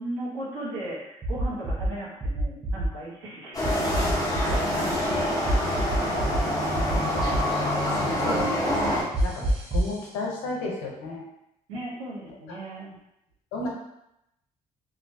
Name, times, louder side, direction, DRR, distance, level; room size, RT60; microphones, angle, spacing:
voice 1, 0.0-4.1 4.4-6.1 8.0-8.6 9.5-9.6 11.7-12.9, right 1 dB, 85° right, -6 dB, 0.8 m, -37 dB
sound 1, 1.2-1.9 2.2-2.9 3.6-4.6 5.5-6.4 6.7-7.4 9.1-9.9, right 1 dB, 40° right, 0.8 m, -26 dB
sound 2, 3.5-9.0, left 1 dB, 20° left, 0.9 m, -26 dB
voice 2, 8.0-11.3 12.5-12.6 13.5-13.7, left 2 dB, 85° left, -2 dB, 0.6 m, -34 dB
2.4 x 2.1 x 2.5 m, 0.82 s
hypercardioid pair, 50°, 18 cm